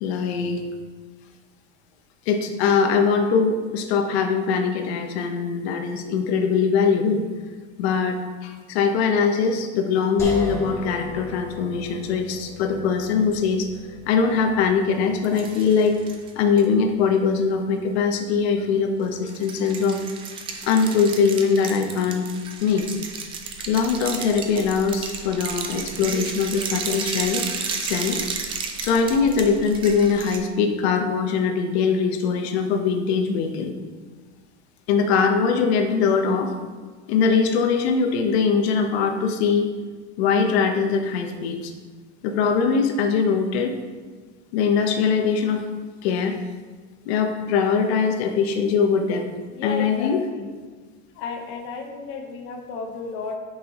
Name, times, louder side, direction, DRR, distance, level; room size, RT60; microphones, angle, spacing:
voice 1, 0.0-0.6 2.3-7.2 7.8-13.7 14.1-16.0 16.3-20.0 20.6-22.3 22.6-22.9 23.7-27.4 27.8-28.2 28.8-33.7 34.9-36.5 37.1-39.7 40.2-41.7 42.2-43.8 44.5-45.6 46.0-46.4 47.1-49.3 49.6-50.2, left 5 dB, 65° left, 5 dB, 0.9 m, -22 dB
sound 1, 10.2-23.3, left 1 dB, 10° left, 1.0 m, -41 dB
sound 2, 15.2-16.6 19.3-30.4, right 5 dB, 15° right, 0.3 m, -33 dB
voice 2, 49.5-50.5 51.1-53.4, left 4 dB, 35° left, 2 dB, 0.8 m, -33 dB
9.2 x 5.6 x 3.0 m, 1.4 s
supercardioid pair, 170°, 34 cm